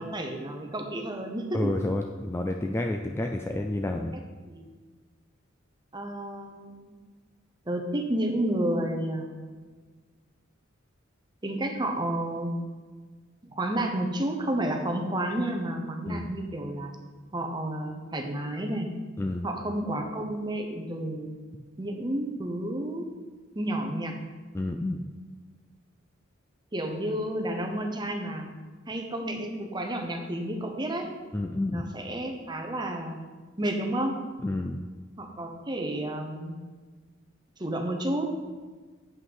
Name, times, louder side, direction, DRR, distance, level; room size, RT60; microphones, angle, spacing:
voice 1, 0.0-2.0 4.4-4.7 5.9-6.9 7.7-9.7 11.4-12.5 13.4-16.9 17.3-18.9 19.4-21.4 21.8-23.1 23.5-24.2 26.7-28.5 28.9-31.1 31.7-33.2 33.6-34.2 35.2-36.5 37.6-38.3, right 1 dB, 20° right, 3 dB, 0.9 m, -31 dB
voice 2, 1.5-4.2 16.1-16.3 19.2-19.5 24.5-25.1 31.3-31.9 34.4-34.9, left 1 dB, 10° left, 3 dB, 0.3 m, -30 dB
8.2 x 5.4 x 5.4 m, 1.4 s
head